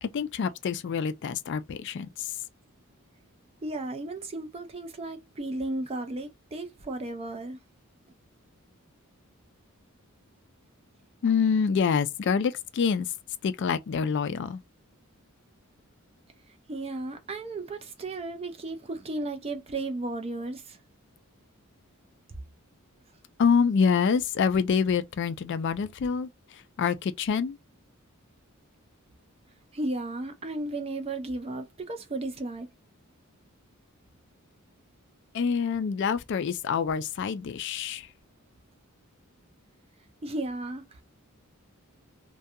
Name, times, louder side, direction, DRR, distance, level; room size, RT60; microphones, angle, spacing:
voice 1, 0.0-2.4 11.2-13.1 13.4-14.6 23.4-27.6 35.3-38.1, left 6 dB, 55° left, 0.3 m, -26 dB
voice 2, 3.6-7.6 16.7-20.8 29.7-32.7 40.2-40.9, right 2 dB, 25° right, 0.4 m, -34 dB
2.4 x 2.2 x 2.6 m
head